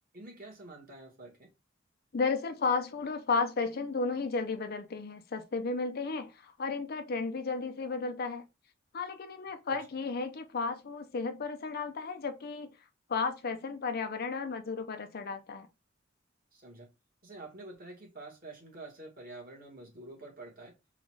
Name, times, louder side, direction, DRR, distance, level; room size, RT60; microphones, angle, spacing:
voice 1, 0.1-1.5 9.7-9.8 16.5-16.9 17.2-20.7, right 2 dB, 45° right, 1.5 m, -48 dB
voice 2, 2.1-8.5 8.9-12.7 13.1-15.7, left 4 dB, 50° left, 0.5 m, -33 dB
3.8 x 2.4 x 3.1 m
head